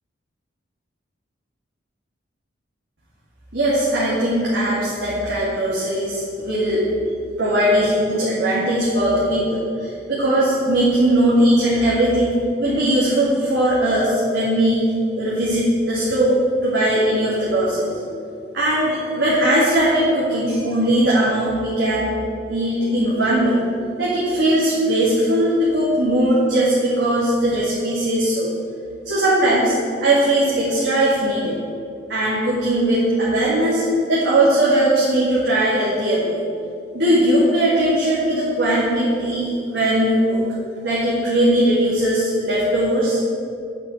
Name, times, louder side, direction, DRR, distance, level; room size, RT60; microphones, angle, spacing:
voice 1, 3.5-6.8 7.4-14.8 15.1-17.9 18.5-22.1 22.5-23.6 24.0-28.5 29.0-31.6 32.1-36.3 36.9-40.5 40.8-43.2, right 1 dB, 70° right, -9 dB, 2.3 m, -19 dB
9.0 x 5.8 x 7.8 m, 2.4 s
head